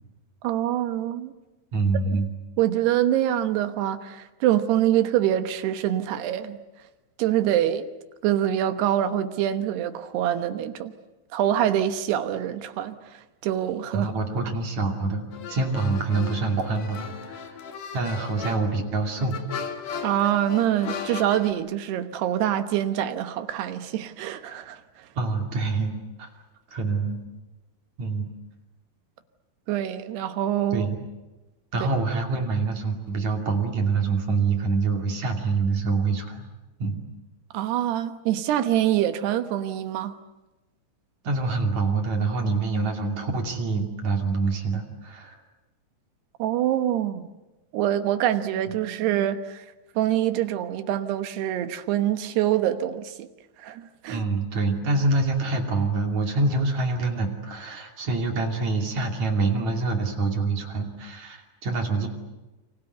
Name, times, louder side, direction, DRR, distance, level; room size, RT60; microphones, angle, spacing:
voice 1, 0.4-1.3 2.1-2.2 2.6-6.6 7.2-7.9 8.2-10.9 11.3-13.0 13.4-14.1 20.0-24.8 29.7-30.9 37.5-40.1 46.4-47.3 47.7-49.7 50.0-53.3 53.6-54.2, right 11 dB, 70° right, 2.9 m, -25 dB
voice 2, 1.7-2.3 13.9-17.6 17.9-19.4 21.0-21.2 25.2-26.3 26.7-27.3 28.0-28.3 30.7-31.0 31.7-36.4 36.8-37.0 41.2-45.4 54.1-62.1, right 3 dB, 45° right, 3.4 m, -26 dB
sound 1, 15.3-21.5, left 6 dB, 55° left, 2.8 m, -36 dB
29.5 x 25.0 x 8.0 m
omnidirectional pair, 5.5 m